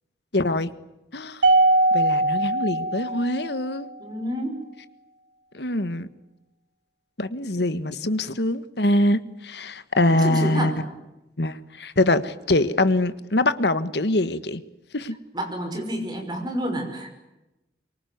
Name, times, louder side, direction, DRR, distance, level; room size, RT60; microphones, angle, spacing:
voice 1, 0.3-0.7 1.1-1.5 1.9-3.9 5.5-6.1 7.2-10.7 11.4-14.6 14.9-15.2, left 1 dB, 75° left, 13 dB, 1.6 m, -23 dB
Mallet percussion, 1.4-3.9, right 2 dB, 90° right, 2.8 m, -21 dB
voice 2, 4.0-4.6 10.0-10.9 15.3-17.1, equal, 25° right, 5 dB, 5.7 m, -29 dB
24.0 x 24.0 x 9.5 m, 0.96 s
head